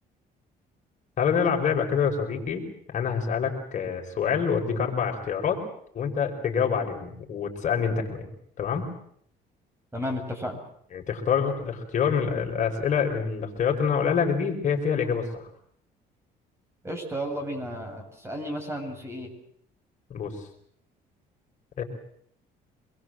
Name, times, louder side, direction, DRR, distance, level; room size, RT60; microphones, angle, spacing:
voice 1, 1.2-2.7 2.9-5.6 5.9-8.3 8.6-8.9 10.9-15.5 20.1-20.3 21.8-21.9, left 6 dB, 45° left, 1 dB, 5.2 m, -26 dB
voice 2, 9.9-10.6 16.8-19.3, equal, 15° right, 4 dB, 7.4 m, -33 dB
25.5 x 21.5 x 7.8 m, 0.67 s
cardioid pair, 110°, 17 cm